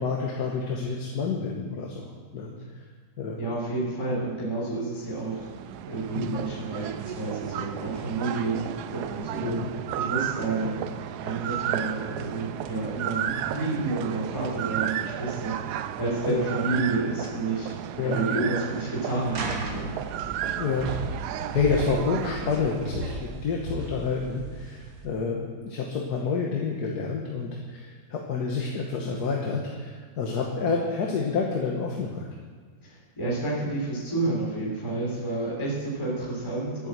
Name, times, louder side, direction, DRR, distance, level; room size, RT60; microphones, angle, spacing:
voice 1, 0.0-2.5 3.2-3.4 6.1-6.3 9.4-9.7 10.6-10.7 16.3-16.4 18.0-18.2 20.5-20.9 21.2-32.3, left 5 dB, 55° left, -1 dB, 1.7 m, -29 dB
voice 2, 3.4-5.5 5.8-9.6 9.9-10.8 11.2-17.7 18.0-19.9 32.8-36.9, right 3 dB, 15° left, -7 dB, 3.6 m, -30 dB
sound 1, 5.1-23.5, right 11 dB, 75° right, 0.9 m, -33 dB
sound 2, 19.2-25.1, right 2 dB, 50° right, 1.8 m, -36 dB
11.5 x 9.3 x 7.5 m, 1.5 s
omnidirectional pair, 2.1 m